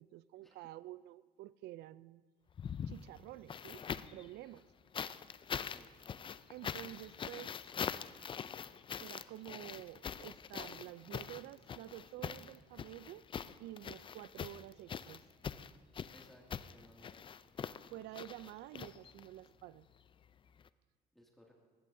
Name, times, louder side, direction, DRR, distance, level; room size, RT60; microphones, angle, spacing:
voice 1, 0.0-2.2 2.9-3.8 4.1-4.7 6.5-7.5 9.0-13.2 13.6-15.2 17.9-19.9, right 15 dB, 80° right, 19 dB, 0.4 m, -49 dB
sound 1, 2.5-4.2 4.9-19.5 20.6-20.7, left 7 dB, 30° left, 0.4 m, -43 dB
voice 2, 16.1-17.2 21.1-21.5, left 1 dB, ahead, -3 dB, 2.2 m, -62 dB
19.5 x 16.0 x 2.7 m, 1.5 s
cardioid pair, 110°, 17 cm